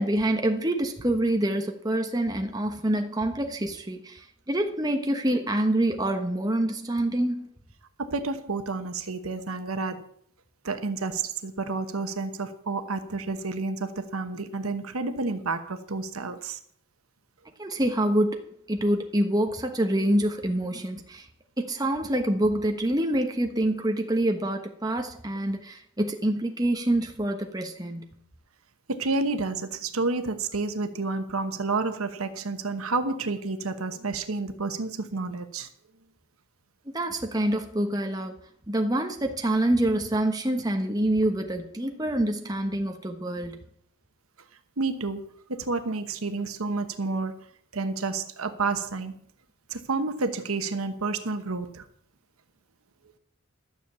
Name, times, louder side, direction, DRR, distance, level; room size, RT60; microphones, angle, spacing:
voice 1, 0.0-7.5 17.6-18.4 18.7-21.3 21.6-28.2 36.9-38.3 38.7-43.6, right 1 dB, 20° right, 1.2 m, -26 dB
voice 2, 8.0-10.1 10.6-16.6 28.9-35.7 44.8-47.4 47.7-49.1 49.7-51.8, right 3 dB, 90° right, 1.1 m, -30 dB
12.5 x 7.0 x 6.9 m
head